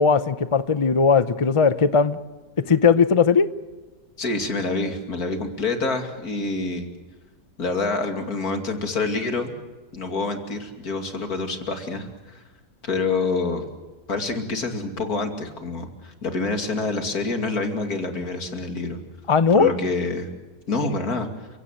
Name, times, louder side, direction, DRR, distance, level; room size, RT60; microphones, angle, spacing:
voice 1, 0.0-2.2 2.6-3.5 19.3-19.7, left 5 dB, 35° left, 13 dB, 0.5 m, -18 dB
voice 2, 4.2-6.9 7.6-9.5 9.9-12.4 12.8-13.7 14.1-19.0 19.5-20.3 20.7-21.5, left 3 dB, 60° left, 6 dB, 3.1 m, -27 dB
30.0 x 17.0 x 7.8 m, 1.3 s
omnidirectional pair, 1.8 m